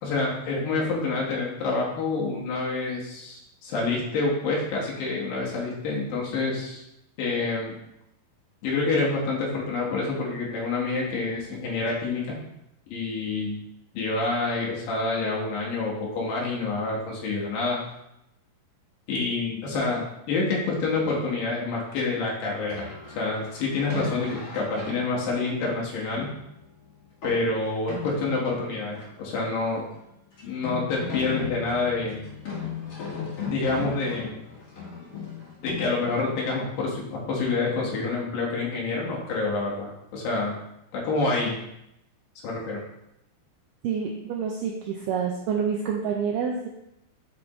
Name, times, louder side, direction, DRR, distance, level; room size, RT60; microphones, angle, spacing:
voice 1, 0.0-6.8 7.2-7.8 8.6-12.4 12.9-13.6 13.9-17.8 19.1-22.9 23.2-26.3 27.2-29.8 30.4-32.3 33.5-34.4 35.6-40.5 40.9-41.6 42.4-42.8, left 3 dB, 70° left, -3 dB, 3.0 m, -27 dB
sound 1, 22.7-29.4 29.6-29.7 29.9-30.0 30.4-36.6, left 5 dB, 45° left, 2.3 m, -37 dB
voice 2, 43.8-46.7, right 6 dB, 85° right, 0 dB, 1.9 m, -28 dB
7.5 x 5.1 x 3.0 m, 0.83 s
omnidirectional pair, 4.4 m